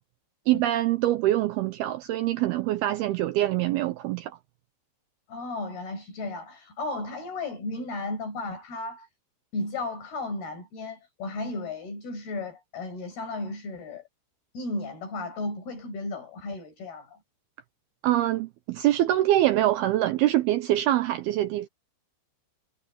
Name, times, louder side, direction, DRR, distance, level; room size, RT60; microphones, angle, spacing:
voice 1, 0.5-4.3 18.0-21.7, right 14 dB, 85° right, 2.2 m, -24 dB
voice 2, 5.3-9.1 9.5-14.0 14.5-17.2, left 2 dB, 55° left, 9.2 m, -34 dB
omnidirectional pair, 5.4 m